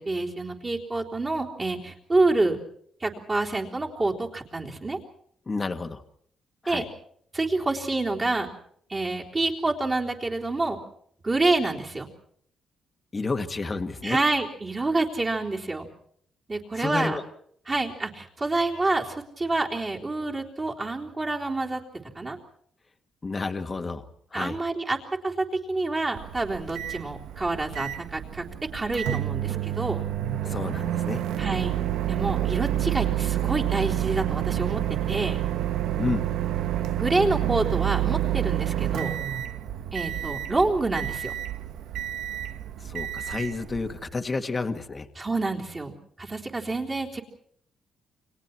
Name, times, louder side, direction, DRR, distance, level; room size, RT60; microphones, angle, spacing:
voice 1, 0.0-2.6 3.0-5.0 6.7-6.9 7.3-8.5 8.9-10.8 11.2-12.1 14.0-15.9 16.5-17.2 17.7-21.8 22.1-22.4 24.3-25.0 25.2-28.5 28.7-30.1 31.4-31.8 32.1-35.4 37.0-39.1 39.9-41.3 45.2-47.2, right 2 dB, 20° right, -1 dB, 3.7 m, -27 dB
voice 2, 5.5-6.0 6.6-6.8 13.1-14.2 16.8-17.2 23.2-24.0 24.3-24.6 30.4-31.2 36.0-36.3 42.8-45.1, left 3 dB, 20° left, 6 dB, 1.8 m, -30 dB
Microwave oven, 26.2-44.1, right 12 dB, 90° right, 1.3 m, -29 dB
30.0 x 26.0 x 4.5 m, 0.64 s
cardioid pair, 165°, 0 cm